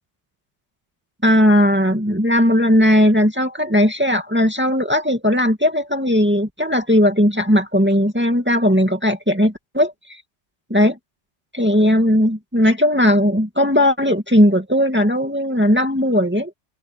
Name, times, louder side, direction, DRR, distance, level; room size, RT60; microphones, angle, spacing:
voice 1, 1.2-10.2 10.7-10.9 11.5-16.5, equal, 10° right, 2.4 m, -17 dB
omnidirectional pair, 1.2 m